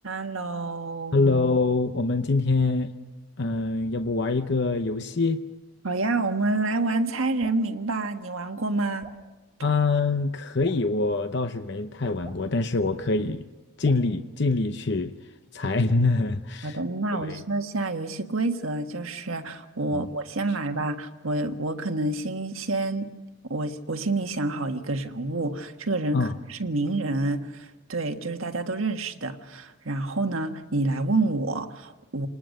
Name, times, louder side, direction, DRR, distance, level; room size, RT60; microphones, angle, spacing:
voice 1, 0.0-1.2 5.8-9.1 16.6-23.1 23.5-32.3, right 2 dB, 75° right, 5 dB, 1.6 m, -28 dB
voice 2, 1.1-2.9 3.4-5.4 9.6-13.4 13.8-15.1 15.5-16.8 17.3-17.4 19.9-20.1 26.1-26.3, left 3 dB, 55° left, 8 dB, 0.8 m, -24 dB
Drip, 7.4-7.7 9.0-9.3 10.6-10.9 12.2-12.5 13.8-14.1, right 2 dB, 25° right, 2.9 m, -46 dB
28.0 x 20.0 x 6.6 m, 1.1 s
head